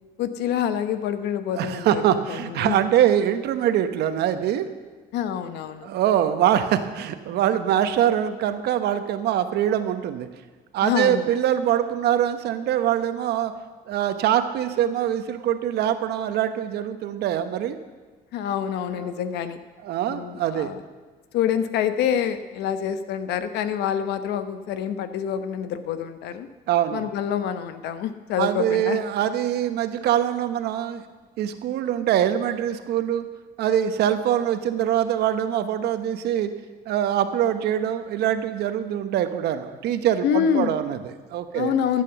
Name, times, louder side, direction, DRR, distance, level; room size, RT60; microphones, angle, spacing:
voice 1, 0.2-2.0 2.3-2.8 5.1-5.9 10.8-11.3 18.3-19.6 20.0-20.8 21.3-26.5 26.9-29.0 40.2-40.8 41.5-42.0, left 9 dB, 80° left, 11 dB, 1.0 m, -26 dB
voice 2, 1.5-4.7 5.8-10.3 10.7-13.5 13.9-17.8 19.8-20.7 26.7-27.1 28.4-31.0 31.4-33.2 33.6-36.5 36.9-41.7, right 10 dB, 75° right, 9 dB, 1.1 m, -23 dB
13.5 x 8.3 x 7.0 m, 1.4 s
cardioid pair, 110°, 17 cm